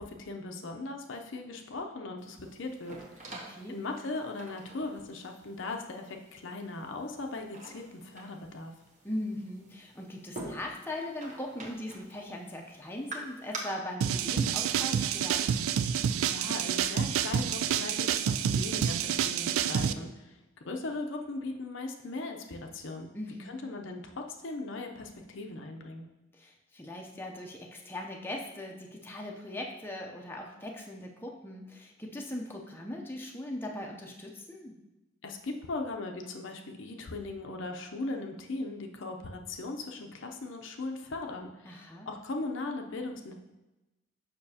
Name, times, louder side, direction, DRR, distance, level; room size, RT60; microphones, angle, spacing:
voice 1, 0.0-3.4 3.7-8.7 16.3-20.4 20.7-23.1 23.5-26.1 35.2-43.4, left 2 dB, 65° left, 3 dB, 0.6 m, -38 dB
sound 1, 2.2-13.6, right 2 dB, 35° right, 0.9 m, -48 dB
voice 2, 3.4-3.8 9.0-15.5 23.1-23.6 26.3-34.8 41.6-42.1, left 1 dB, 10° left, 0 dB, 0.6 m, -40 dB
sound 2, 14.0-19.9, right 8 dB, 80° right, 0.3 m, -28 dB
6.7 x 5.7 x 2.8 m, 1.0 s
head